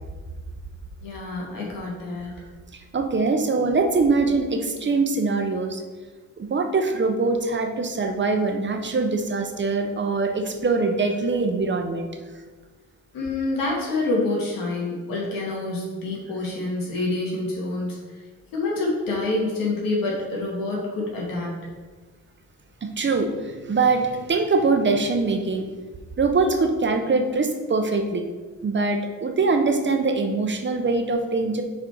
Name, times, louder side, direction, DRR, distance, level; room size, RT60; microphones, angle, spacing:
voice 1, 1.0-2.3 13.1-18.0 18.5-21.5, left 2 dB, 85° left, -3 dB, 2.1 m, -27 dB
voice 2, 2.9-5.8 6.4-12.1 22.8-25.7 26.2-28.2 28.6-31.6, right 3 dB, 35° right, 5 dB, 0.9 m, -23 dB
6.3 x 4.3 x 4.6 m, 1.3 s
cardioid pair, 80°, 33 cm